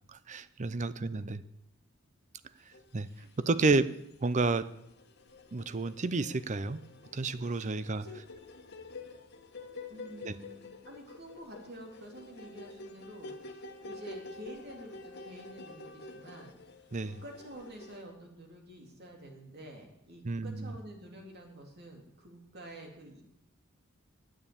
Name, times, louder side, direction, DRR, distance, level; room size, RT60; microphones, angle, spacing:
voice 1, 0.1-1.4 2.9-3.1 3.4-3.9 4.2-4.7 5.5-6.8 7.1-8.0 10.2-10.4 16.9-17.2 20.2-20.7, right 3 dB, 35° right, 15 dB, 0.5 m, -30 dB
voice 2, 0.8-1.2 3.1-3.9 7.9-8.2 9.9-16.5 17.0-23.2, right 1 dB, 50° right, 2 dB, 2.8 m, -49 dB
sound 1, 2.7-3.5 3.9-18.0, left 3 dB, 55° left, 1.3 m, -49 dB
9.6 x 8.7 x 8.8 m, 0.81 s
head